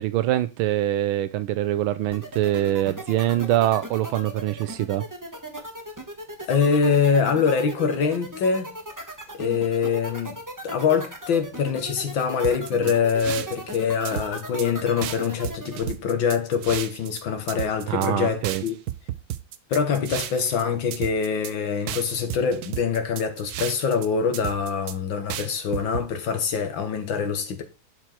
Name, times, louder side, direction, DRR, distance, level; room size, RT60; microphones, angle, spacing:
voice 1, 0.0-5.0 12.7-12.9 17.9-18.6, right 13 dB, 85° right, 1.4 m, -24 dB
sound 1, 2.1-15.8, right 1 dB, 10° right, 1.0 m, -37 dB
voice 2, 6.5-8.7 9.3-10.4 10.6-18.8 19.7-27.6, left 6 dB, 70° left, 2.1 m, -24 dB
sound 2, 12.4-13.8 14.0-14.7 15.0-17.2 17.5-18.1 18.4-20.6 20.9-21.5 21.9-24.1 24.3-24.9 25.3-26.0, right 12 dB, 70° right, 0.9 m, -33 dB
11.0 x 4.6 x 4.5 m
omnidirectional pair, 2.2 m